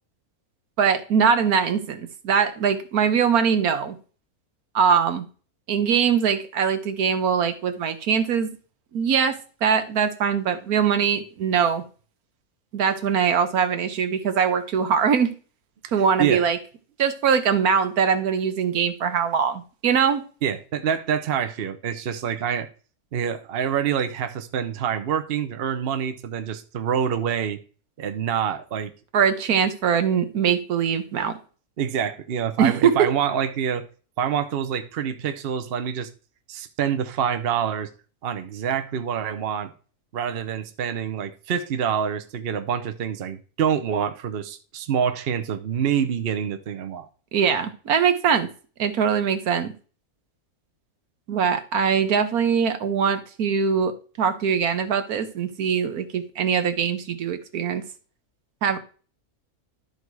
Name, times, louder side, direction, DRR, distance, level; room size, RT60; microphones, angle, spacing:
voice 1, 0.8-4.0 4.7-5.2 5.7-8.5 8.9-11.8 12.7-15.3 15.9-16.6 17.0-20.2 29.1-31.3 32.6-33.1 47.3-48.5 48.8-49.7 51.3-57.8 58.6-58.8, right 7 dB, 80° right, 1.4 m, -22 dB
voice 2, 20.4-22.7 23.1-27.6 28.0-28.9 31.8-33.9 34.2-36.1 36.5-37.9 38.2-39.7 40.1-47.1, right 8 dB, 50° right, 0.9 m, -26 dB
12.0 x 4.1 x 4.7 m
omnidirectional pair, 1.6 m